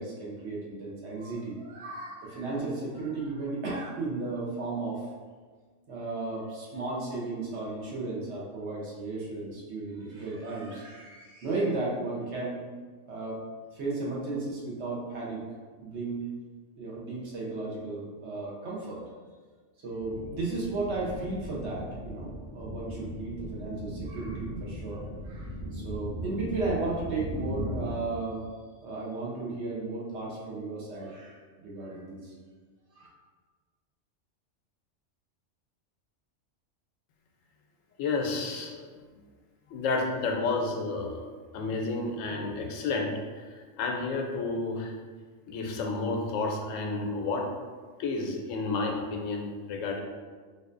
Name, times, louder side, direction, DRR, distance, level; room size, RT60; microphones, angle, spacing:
voice 1, 0.0-5.1 5.9-12.6 13.1-13.4 13.7-15.4 15.8-16.2 16.8-19.0 19.8-28.5 28.8-32.3 32.9-33.1, right 3 dB, 65° right, -5 dB, 1.1 m, -34 dB
sound 1, 20.0-27.9, equal, 80° right, 1.3 m, -38 dB
voice 2, 38.0-38.9 39.7-41.3 41.5-43.4 43.8-45.0 45.5-47.5 48.0-50.0, left 3 dB, 90° left, 2 dB, 0.9 m, -31 dB
4.0 x 2.6 x 2.5 m, 1.5 s
omnidirectional pair, 1.3 m